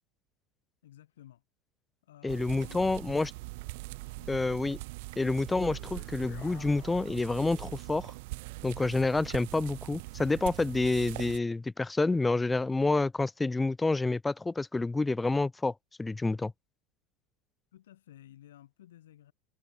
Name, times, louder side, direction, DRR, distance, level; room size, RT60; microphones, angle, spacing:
voice 1, 0.8-1.4 2.0-3.0 4.2-4.3 17.7-19.3, left 12 dB, 75° left, 5.1 m, -54 dB
voice 2, 2.2-3.3 4.3-4.8 5.2-8.1 8.6-15.7 16.0-16.5, left 3 dB, 15° left, 0.4 m, -28 dB
sound 1, 2.3-11.4, right 24 dB, 65° right, 2.2 m, -42 dB
sound 2, 5.6-7.9, left 14 dB, 45° left, 6.4 m, -54 dB
figure-of-eight pair, 75°, 0 cm